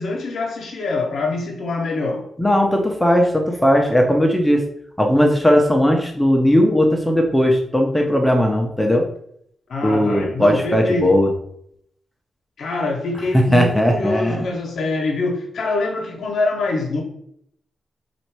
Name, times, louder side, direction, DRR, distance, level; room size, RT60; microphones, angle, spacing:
voice 1, 0.0-2.3 9.7-11.2 12.6-17.0, left 3 dB, 75° left, 0.8 m, -24 dB
voice 2, 2.4-4.6 5.0-9.1 9.8-11.3 13.5-14.5, equal, 5° left, 0.7 m, -17 dB
4.1 x 2.5 x 4.6 m
cardioid pair, 90°, 0 cm